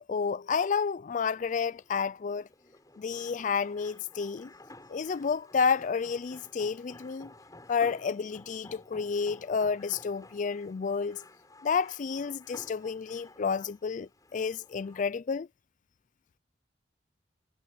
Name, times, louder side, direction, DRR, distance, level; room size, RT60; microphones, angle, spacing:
voice 1, 0.1-2.5 3.0-4.5 4.9-7.3 7.7-11.2 11.6-15.5, left 5 dB, 45° left, 0.4 m, -30 dB
sound 1, 1.3-15.1, left 2 dB, 20° left, 7.4 m, -54 dB
head